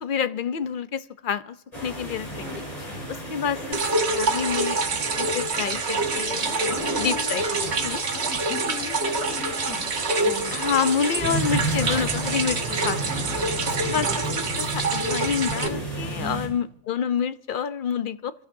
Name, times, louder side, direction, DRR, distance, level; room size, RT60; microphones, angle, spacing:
voice 1, 0.0-1.5 1.8-2.6 3.1-3.8 4.1-4.8 5.2-8.1 10.5-13.2 13.8-14.1 14.5-18.3, left 7 dB, 50° left, 12 dB, 0.7 m, -28 dB
sound 1, 1.7-16.5, right 1 dB, 30° left, 4.9 m, -33 dB
voice 2, 2.4-3.2 6.4-7.0 8.1-10.6 12.4-12.6 12.8-14.1 16.2-16.6, left 4 dB, 85° left, 3 dB, 1.9 m, -40 dB
sound 2, 3.7-15.7, right 3 dB, 60° right, 1.4 m, -26 dB
29.0 x 14.0 x 2.7 m, 0.78 s
omnidirectional pair, 1.3 m